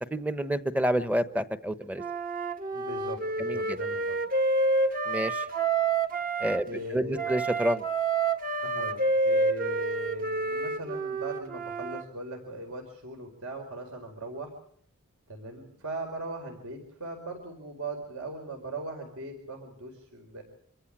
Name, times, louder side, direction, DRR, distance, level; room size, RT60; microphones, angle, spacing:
voice 1, 0.1-2.0 3.4-3.8 5.1-5.4 6.4-7.8, right 1 dB, 5° right, 11 dB, 1.0 m, -29 dB
Wind instrument woodwind instrument, 2.0-6.6 7.2-12.0, right 3 dB, 40° right, 1.6 m, -28 dB
voice 2, 2.7-4.2 6.6-7.3 8.6-14.5 15.3-20.4, right 2 dB, 65° right, 2 dB, 4.8 m, -39 dB
26.5 x 15.0 x 8.9 m, 0.65 s
head